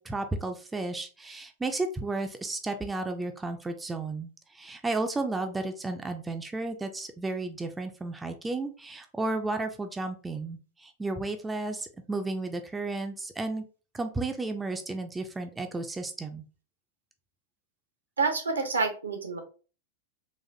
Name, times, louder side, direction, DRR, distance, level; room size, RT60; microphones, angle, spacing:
voice 1, 0.0-13.6 13.9-16.4, right 2 dB, 10° right, 6 dB, 0.4 m, -33 dB
voice 2, 18.2-19.4, right 4 dB, 75° right, 5 dB, 0.8 m, -28 dB
4.0 x 2.5 x 2.7 m, 0.36 s
figure-of-eight pair, 90°, 0 cm